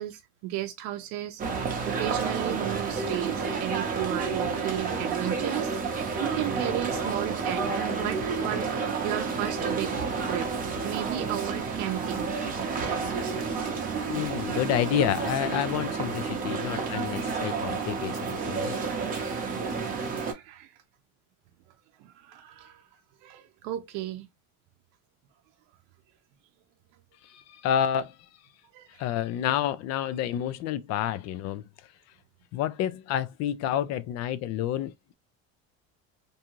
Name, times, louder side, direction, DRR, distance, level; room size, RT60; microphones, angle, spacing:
voice 1, 0.0-7.7 8.0-9.9 10.3-10.5 10.8-12.3 19.9-20.7 22.0-22.8 23.2-24.3 28.7-29.0, right 13 dB, 70° right, 0.6 m, -34 dB
sound 1, 1.4-20.3, right 5 dB, 25° right, 0.7 m, -30 dB
voice 2, 14.1-18.7 27.2-28.2 28.9-31.6 32.5-35.1, left 10 dB, 50° left, 0.5 m, -29 dB
2.7 x 2.3 x 2.9 m
cardioid pair, 150°, 34 cm